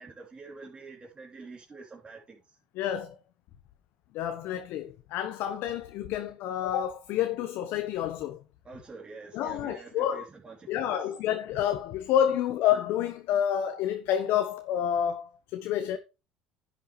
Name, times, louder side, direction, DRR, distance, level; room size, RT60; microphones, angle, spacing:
voice 1, 0.0-2.6 8.6-11.1, right 4 dB, 25° right, 3.2 m, -46 dB
voice 2, 2.8-3.1 4.1-8.4 9.3-10.2 10.7-16.0, left 10 dB, 65° left, 1.1 m, -29 dB
10.5 x 8.2 x 3.2 m
hypercardioid pair, 80°, 4 cm